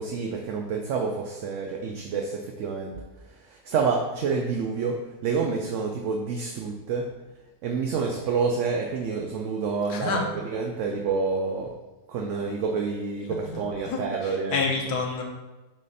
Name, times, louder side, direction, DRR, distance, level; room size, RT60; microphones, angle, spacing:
voice 1, 0.0-3.0 3.5-7.1 7.6-11.8 12.1-14.6, right 5 dB, 65° right, 2 dB, 0.8 m, -28 dB
voice 2, 9.9-10.4 13.3-15.2, left 4 dB, 85° left, 1 dB, 1.4 m, -29 dB
7.4 x 2.5 x 5.4 m, 1.1 s
omnidirectional pair, 1.6 m